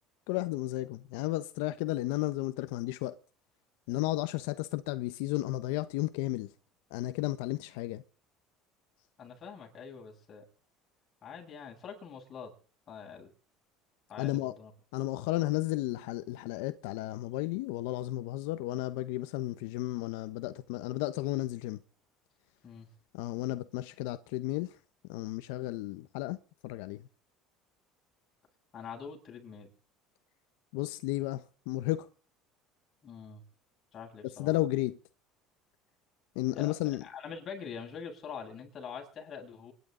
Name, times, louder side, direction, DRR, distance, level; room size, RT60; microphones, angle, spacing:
voice 1, 0.3-3.1 3.9-6.5 6.9-8.0 14.2-14.5 14.9-21.8 23.1-24.8 25.1-26.4 26.6-27.0 30.7-32.1 34.4-35.0 36.3-37.0, left 17 dB, 85° left, 1.0 m, -33 dB
voice 2, 9.2-10.4 11.2-12.5 12.9-13.3 14.1-14.7 22.6-22.9 28.7-29.7 33.0-33.4 33.9-34.5 36.5-36.7 37.0-39.7, left 6 dB, 35° left, 7.9 m, -44 dB
27.0 x 11.5 x 3.9 m
cardioid pair, 135°, 0 cm